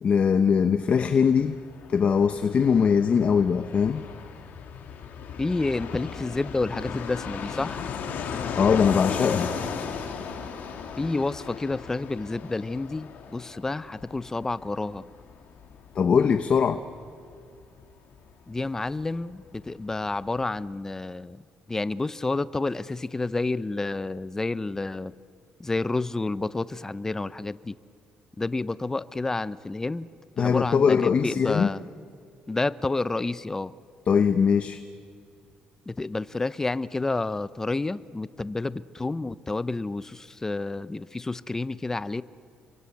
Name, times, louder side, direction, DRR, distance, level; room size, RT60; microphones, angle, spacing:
voice 1, 0.0-1.6 1.9-4.0 8.5-9.5 16.0-16.8 30.4-31.7 34.1-34.8, left 6 dB, 40° left, 10 dB, 0.9 m, -21 dB
Fixed-wing aircraft airplane, 1.0-19.4 19.6-19.7 19.9-20.6, left 6 dB, 70° left, 3.3 m, -36 dB
voice 2, 5.4-7.9 11.0-15.0 18.5-21.4 21.7-25.1 25.6-27.7 28.4-30.1 30.4-31.8 32.5-33.7 35.9-42.2, left 3 dB, 15° left, 16 dB, 0.6 m, -29 dB
29.5 x 24.0 x 8.5 m, 2.3 s
cardioid pair, 130°, 3 cm